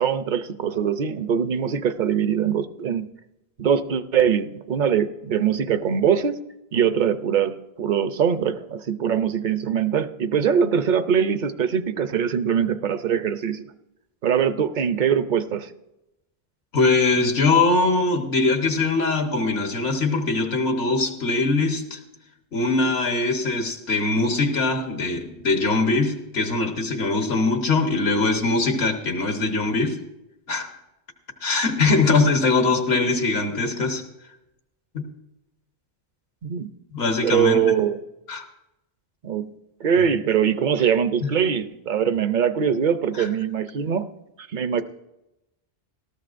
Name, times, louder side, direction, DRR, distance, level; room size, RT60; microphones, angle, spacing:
voice 1, 0.0-3.1 3.6-6.4 6.7-13.7 14.2-15.7 36.4-36.7 37.2-38.0 39.2-39.5 39.8-44.1 44.4-44.8, right 8 dB, 55° right, 12 dB, 0.6 m, -22 dB
voice 2, 16.7-22.0 22.5-30.0 30.5-30.7 31.4-34.0 34.9-35.0 36.9-37.6 38.3-38.4 41.2-41.3 43.2-43.3, left 3 dB, 80° left, 4 dB, 1.5 m, -22 dB
18.5 x 13.5 x 2.5 m, 0.94 s
omnidirectional pair, 1.1 m